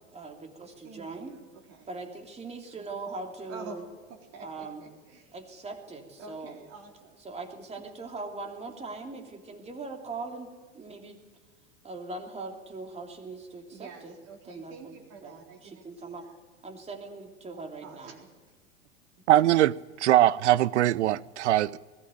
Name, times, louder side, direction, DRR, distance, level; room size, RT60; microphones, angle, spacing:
voice 1, 0.1-1.3 1.9-3.8 4.4-4.8 5.3-6.6 7.2-11.2 11.8-14.1 14.4-15.0 15.2-16.3 16.6-18.2, right 3 dB, 15° right, 3 dB, 3.0 m, -41 dB
voice 2, 0.8-1.9 3.5-3.8 4.1-5.3 6.2-7.2 13.7-16.3 17.8-18.3, right 5 dB, 45° right, 1 dB, 4.0 m, -48 dB
voice 3, 19.3-21.8, right 13 dB, 70° right, 22 dB, 0.6 m, -22 dB
21.0 x 15.0 x 9.1 m, 1.3 s
hypercardioid pair, 95°, 36 cm